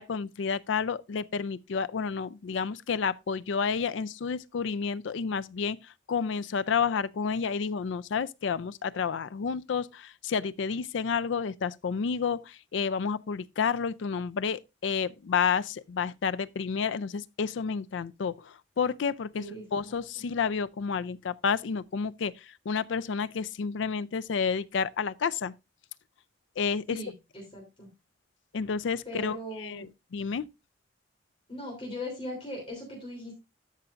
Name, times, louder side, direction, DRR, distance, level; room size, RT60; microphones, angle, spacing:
voice 1, 0.0-19.4 19.7-25.5 26.6-27.0 28.5-30.4, left 6 dB, 75° left, 0.4 m, -30 dB
voice 2, 19.4-19.9 26.9-27.9 29.0-29.9 31.5-33.3, left 1 dB, 30° left, 3.2 m, -39 dB
13.0 x 5.8 x 2.5 m
head